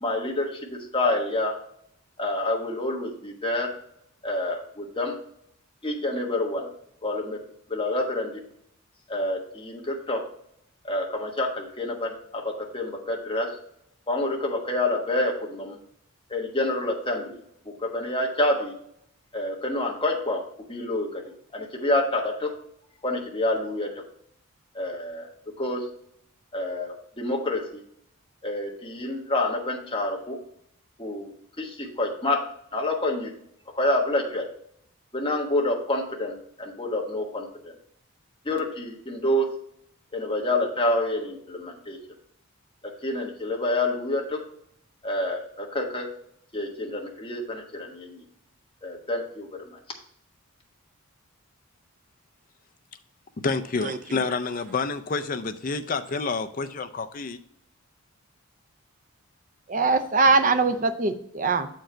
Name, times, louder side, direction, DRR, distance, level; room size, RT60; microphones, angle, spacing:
voice 1, 0.0-1.6 2.2-3.7 4.2-5.2 5.8-6.7 7.0-7.4 7.7-8.4 9.1-10.3 10.8-13.5 14.1-15.8 16.3-18.7 19.3-20.4 20.7-21.2 21.5-22.6 23.0-23.9 24.7-25.9 26.5-27.8 28.4-30.4 31.0-31.3 31.6-32.5 32.7-33.3 33.7-34.5 35.1-37.7 38.4-39.6 40.1-42.0 42.8-44.4 45.0-46.1 46.5-48.2 48.8-49.6, left 1 dB, 25° left, -1 dB, 1.3 m, -28 dB
voice 2, 53.4-57.4, left 4 dB, 40° left, 11 dB, 0.4 m, -28 dB
voice 3, 59.7-61.7, right 3 dB, 35° right, 8 dB, 0.6 m, -22 dB
7.6 x 4.6 x 4.4 m, 0.71 s
head